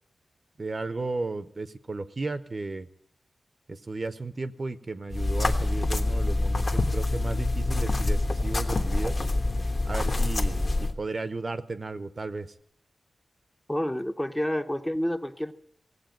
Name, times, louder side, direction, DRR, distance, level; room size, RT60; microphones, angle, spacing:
voice 1, 0.6-2.9 3.7-9.1 9.8-12.5, right 3 dB, 40° right, 12 dB, 0.7 m, -34 dB
sound 1, 5.1-10.9, left 2 dB, 45° left, 1.2 m, -26 dB
voice 2, 13.7-15.5, equal, 10° left, 7 dB, 0.7 m, -29 dB
17.5 x 8.2 x 9.0 m, 0.71 s
wide cardioid pair, 115°, 0 cm